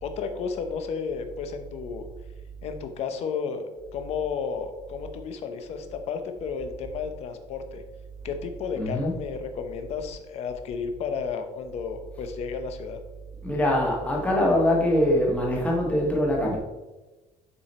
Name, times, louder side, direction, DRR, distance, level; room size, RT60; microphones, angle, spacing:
voice 1, 0.0-2.1 2.6-3.6 3.9-7.8 8.2-13.0, left 6 dB, 50° left, 8 dB, 0.8 m, -32 dB
voice 2, 8.8-9.2 13.4-16.6, left 1 dB, 10° left, -1 dB, 1.3 m, -23 dB
7.1 x 4.9 x 4.3 m, 1.1 s
cardioid pair, 175°, 14 cm